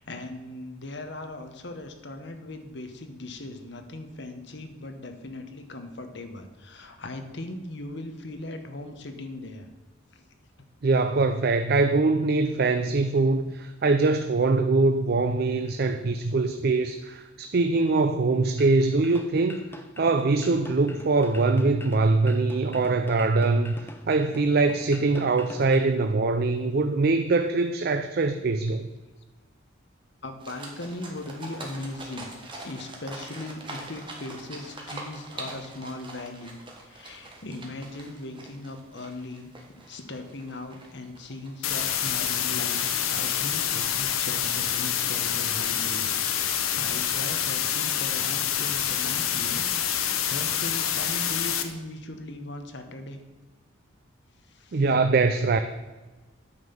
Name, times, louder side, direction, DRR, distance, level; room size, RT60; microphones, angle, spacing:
voice 1, 0.0-9.7 10.1-10.3 30.2-32.3 32.6-39.5 39.9-42.8 43.1-46.1 46.4-49.7 49.9-53.2 54.4-54.8, left 2 dB, 55° left, 6 dB, 1.1 m, -39 dB
voice 2, 10.8-19.6 20.0-28.8 54.7-55.6, right 3 dB, 50° right, 8 dB, 0.4 m, -23 dB
sound 1, 18.6-25.9, left 1 dB, 10° left, 0.6 m, -45 dB
sound 2, 30.4-47.5, right 2 dB, 25° right, 1.4 m, -45 dB
sound 3, 41.6-51.6, left 9 dB, 90° left, 0.9 m, -27 dB
9.4 x 5.5 x 7.0 m, 1.2 s
head